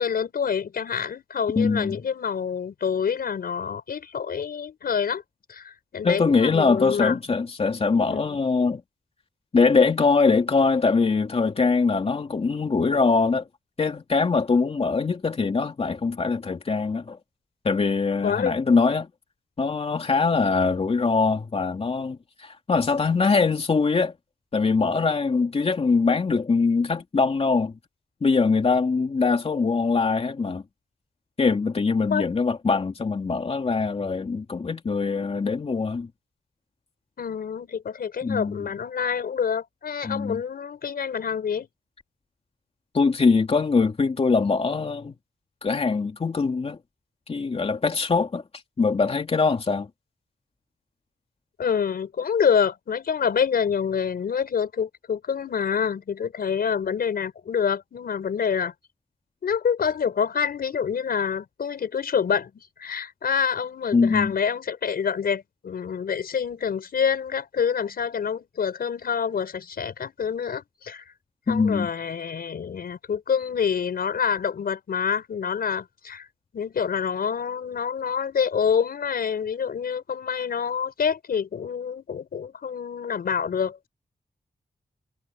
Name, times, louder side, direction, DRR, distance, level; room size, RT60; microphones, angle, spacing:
voice 1, 0.0-5.2 5.5-7.2 8.1-8.4 18.2-18.6 32.1-32.2 37.2-41.7 51.6-58.7 59.4-62.5 62.8-71.0 71.5-76.3 76.5-83.9, left 7 dB, 90° left, 5.2 m, -27 dB
voice 2, 1.6-2.0 6.0-8.8 9.5-13.5 13.8-17.2 17.6-19.1 19.6-24.1 24.5-27.7 28.2-30.6 31.4-36.1 38.2-38.7 40.0-40.4 42.9-45.1 45.6-46.8 47.3-48.4 48.8-49.9 63.9-64.3 71.5-71.9, left 4 dB, 40° left, 3.1 m, -22 dB
wide cardioid pair, 135°, 15 cm